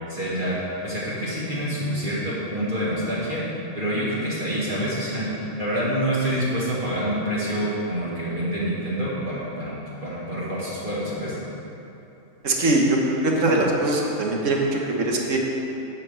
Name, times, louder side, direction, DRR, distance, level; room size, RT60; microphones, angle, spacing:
voice 1, 0.1-3.4 3.8-11.4, equal, 45° right, -9 dB, 2.0 m, -27 dB
voice 2, 12.4-12.8 13.2-14.7 15.0-15.4, right 2 dB, 85° right, -1 dB, 1.6 m, -21 dB
9.6 x 5.3 x 7.9 m, 3.0 s
omnidirectional pair, 1.3 m